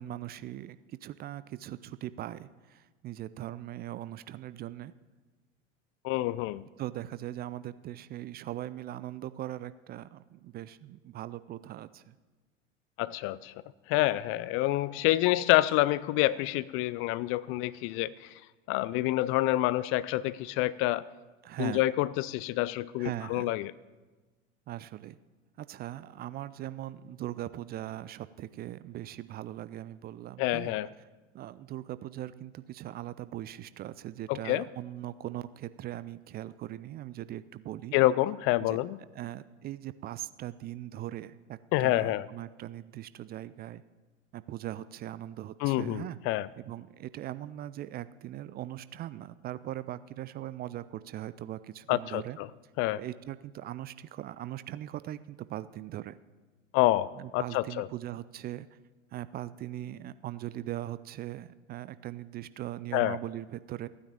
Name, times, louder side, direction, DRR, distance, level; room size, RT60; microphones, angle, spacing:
voice 1, 0.0-4.9 6.8-12.2 21.4-21.8 23.0-23.5 24.7-25.2 25.6-30.7 31.3-37.9 38.6-38.8 39.1-43.8 44.3-46.2 46.6-52.4 53.0-56.2 57.2-58.7 59.1-63.9, right 13 dB, 25° right, 15 dB, 0.4 m, -40 dB
voice 2, 6.0-6.6 13.0-13.5 13.9-18.4 18.7-21.0 21.6-23.7 30.4-30.9 34.3-34.7 37.9-39.0 41.7-42.3 45.6-46.5 51.9-52.5 52.8-53.0 56.7-57.9 62.9-63.2, left 16 dB, 35° left, 19 dB, 0.4 m, -27 dB
15.0 x 9.6 x 8.7 m, 1.3 s
figure-of-eight pair, 85°, 38 cm